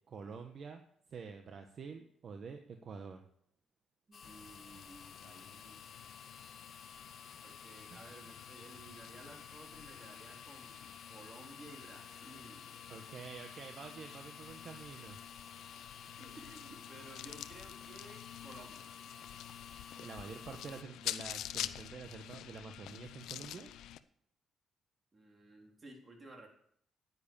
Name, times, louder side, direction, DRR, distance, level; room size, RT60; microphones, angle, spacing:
voice 1, 0.1-0.8 1.1-3.2 7.9-8.0 12.9-15.2 19.9-23.7, right 5 dB, 55° right, 5 dB, 1.3 m, -48 dB
sound 1, 4.1-20.8, left 6 dB, 55° left, 0.8 m, -54 dB
voice 2, 4.1-5.8 7.4-12.9 16.2-18.9 25.1-26.5, right 1 dB, 30° right, 1 dB, 3.9 m, -55 dB
sound 2, 4.2-24.0, left 12 dB, 85° left, 0.6 m, -48 dB
9.9 x 9.9 x 7.1 m, 0.67 s
cardioid pair, 90°, 0 cm